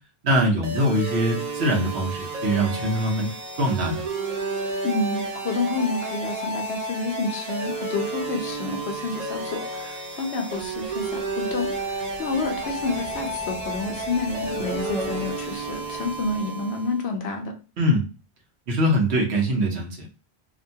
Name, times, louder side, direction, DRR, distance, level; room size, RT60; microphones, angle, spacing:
voice 1, 0.2-3.3 3.6-4.0 17.8-18.0 18.7-20.1, equal, 85° right, 1 dB, 1.2 m, -23 dB
sound 1, 0.6-17.0, right 2 dB, 45° right, 0.7 m, -31 dB
voice 2, 4.8-17.5, left 3 dB, 85° left, 4 dB, 0.9 m, -29 dB
sound 2, 10.6-16.4, right 1 dB, ahead, 0.8 m, -40 dB
2.9 x 2.2 x 2.7 m, 0.33 s
omnidirectional pair, 1.1 m